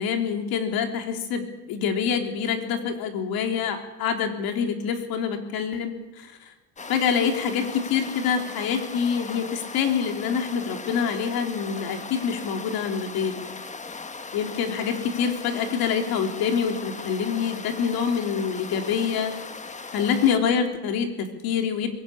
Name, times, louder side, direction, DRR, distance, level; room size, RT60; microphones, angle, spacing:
voice 1, 0.0-6.3 6.9-13.4 14.3-19.3 19.9-21.9, left 7 dB, 80° left, 5 dB, 3.4 m, -26 dB
sound 1, 6.8-20.4, left 4 dB, 20° left, 1.3 m, -38 dB
22.0 x 18.0 x 8.7 m, 1.1 s
cardioid pair, 115°, 35 cm